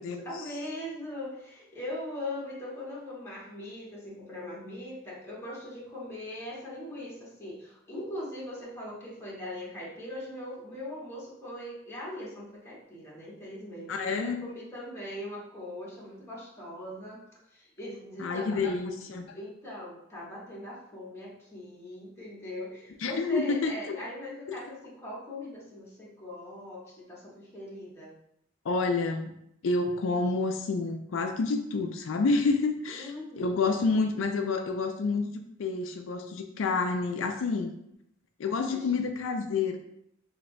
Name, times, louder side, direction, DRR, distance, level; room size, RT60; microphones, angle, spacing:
voice 1, 0.0-17.2 17.5-18.7 19.3-28.1 32.9-33.6 38.4-38.9, left 1 dB, 15° left, -6 dB, 1.3 m, -40 dB
voice 2, 13.9-14.4 18.2-19.2 23.0-24.0 28.6-29.3 29.6-35.3 35.6-37.7 38.4-39.8, left 4 dB, 85° left, 5 dB, 0.4 m, -28 dB
6.4 x 2.6 x 2.2 m, 0.76 s
head